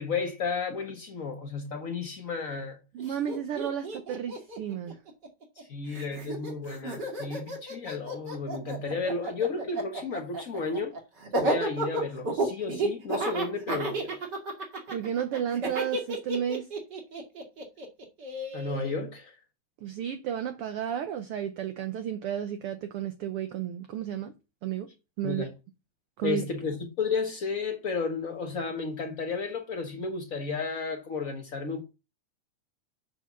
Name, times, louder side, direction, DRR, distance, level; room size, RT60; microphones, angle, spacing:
voice 1, 0.0-2.8 3.1-3.2 5.6-11.0 11.4-14.3 18.5-19.4 25.2-25.5 26.2-31.8, left 4 dB, 65° left, 0.8 m, -33 dB
voice 2, 2.9-5.0 14.9-16.7 19.8-24.3 24.6-24.9 25.2-25.5 26.2-26.4, right 9 dB, 65° right, 1.5 m, -32 dB
Laughter, 3.0-3.1 3.3-5.6 5.9-18.9, right 2 dB, 35° right, 2.8 m, -32 dB
7.4 x 6.2 x 7.2 m
omnidirectional pair, 3.4 m